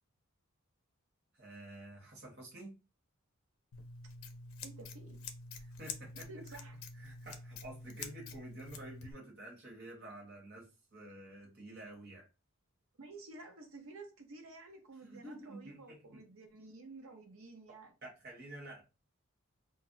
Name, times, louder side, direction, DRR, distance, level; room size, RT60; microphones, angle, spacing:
voice 1, 1.3-2.7 5.6-6.3 6.9-12.2 15.0-16.2 18.0-18.8, right 1 dB, 55° right, 1.2 m, -50 dB
Scissors, 3.7-9.1, left 4 dB, 75° left, 0.5 m, -47 dB
voice 2, 4.6-5.2 6.1-6.8 13.0-17.9, right 3 dB, 90° right, 0.8 m, -52 dB
2.4 x 2.0 x 3.8 m
head